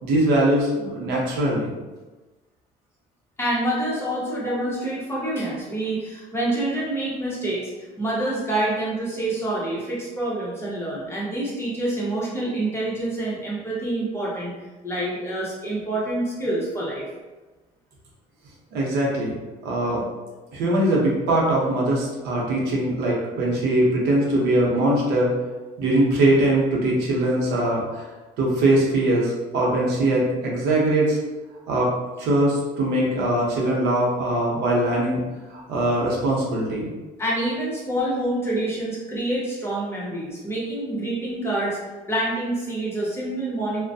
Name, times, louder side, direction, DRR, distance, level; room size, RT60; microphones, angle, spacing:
voice 1, 0.0-1.7 4.5-4.6 18.7-19.3 19.6-20.0 20.5-25.3 25.8-28.0 28.4-31.2 31.7-31.9 32.2-35.2 35.5-36.9, right 1 dB, 80° right, -3 dB, 0.7 m, -21 dB
voice 2, 3.4-7.7 8.0-14.5 14.8-17.1 37.2-41.8 42.1-43.8, right 1 dB, 15° left, -6 dB, 0.9 m, -27 dB
2.3 x 2.1 x 2.6 m, 1.2 s
cardioid pair, 110°, 17 cm